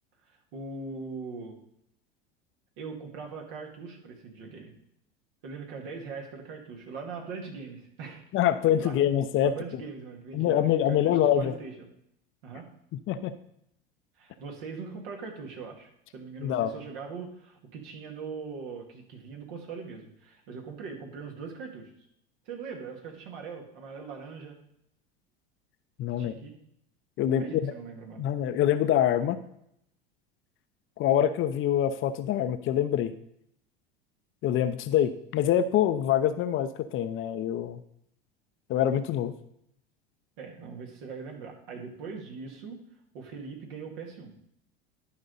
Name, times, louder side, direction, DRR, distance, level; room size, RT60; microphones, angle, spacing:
voice 1, 0.3-1.6 2.8-4.7 5.4-8.2 8.8-8.9 9.4-10.6 10.9-11.9 12.4-12.7 14.2-21.9 22.5-24.6 26.1-26.5 27.4-28.3 40.4-42.8 43.1-44.3, right 5 dB, 65° right, 1 dB, 2.3 m, -41 dB
voice 2, 8.3-9.5 10.3-11.5 12.9-13.3 16.4-16.7 26.0-26.3 27.2-27.7 28.2-29.4 31.0-33.1 34.4-37.8 38.7-39.3, left 10 dB, 45° left, 10 dB, 0.7 m, -25 dB
11.5 x 5.2 x 4.1 m, 0.73 s
hypercardioid pair, 80°, 30 cm